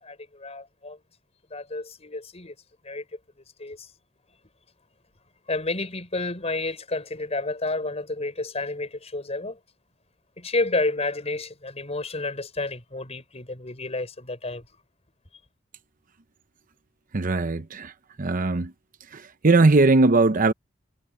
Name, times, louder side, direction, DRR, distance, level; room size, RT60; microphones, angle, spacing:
voice 1, 0.0-1.0 1.5-2.6 2.8-3.1 3.6-3.9 5.5-9.6 10.4-14.6, left 2 dB, 35° left, 5.1 m, -30 dB
voice 2, 17.1-17.9 18.2-18.7 19.1-20.5, right 3 dB, 45° right, 0.7 m, -19 dB
head